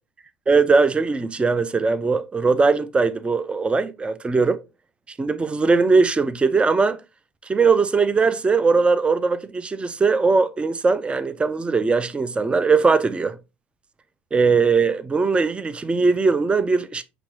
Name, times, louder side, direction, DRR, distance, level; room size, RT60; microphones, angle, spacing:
voice 1, 0.5-4.6 5.1-7.0 7.4-13.4 14.3-17.0, right 4 dB, 20° right, 0.4 m, -20 dB
5.1 x 3.0 x 2.9 m
hypercardioid pair, 65°, 6 cm